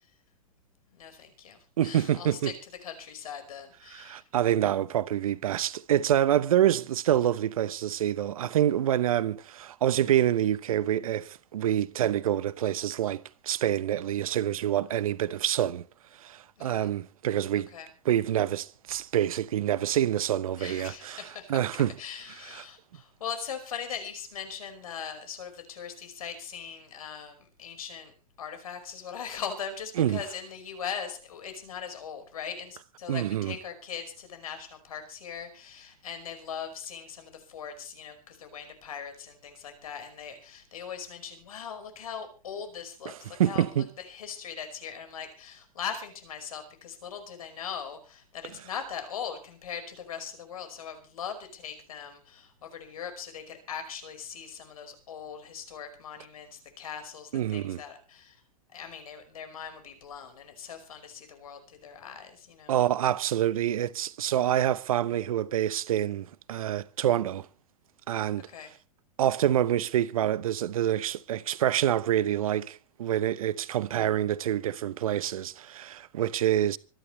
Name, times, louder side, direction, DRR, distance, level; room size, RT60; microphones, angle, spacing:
voice 1, 0.9-4.2 16.6-16.9 17.7-17.9 20.6-21.6 22.0-58.4 58.7-62.7 68.5-68.7, left 7 dB, 70° left, 5.2 m, -40 dB
voice 2, 1.8-2.5 3.9-15.8 16.2-17.7 18.0-21.2 21.5-21.9 22.5-22.6 30.0-30.2 33.1-33.6 43.0-43.9 57.3-57.8 62.7-67.5 68.1-68.5 69.2-76.8, right 11 dB, 70° right, 1.0 m, -27 dB
25.5 x 11.5 x 3.3 m
figure-of-eight pair, 95°, 19 cm